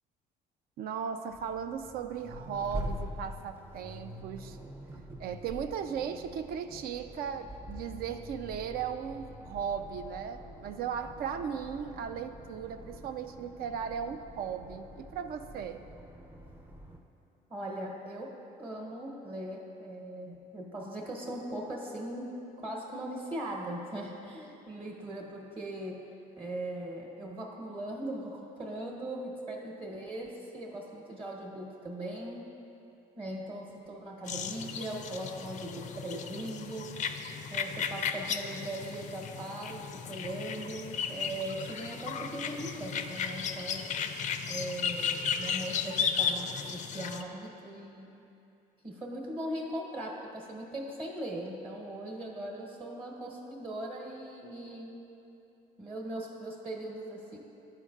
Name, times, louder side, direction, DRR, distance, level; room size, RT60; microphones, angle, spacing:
voice 1, 0.8-4.6 5.2-15.8, right 7 dB, 65° right, 8 dB, 0.4 m, -37 dB
Accelerating revving vroom, 1.3-17.0, equal, 15° right, 0.5 m, -45 dB
voice 2, 17.5-26.1 26.4-32.5 33.2-37.2 37.5-43.9 44.5-48.2 48.8-55.0 55.8-57.4, right 1 dB, 30° right, -2 dB, 1.2 m, -39 dB
sound 1, 34.3-47.2, left 6 dB, 45° left, 0.4 m, -35 dB
11.5 x 4.5 x 2.4 m, 2.9 s
cardioid pair, 110°, 17 cm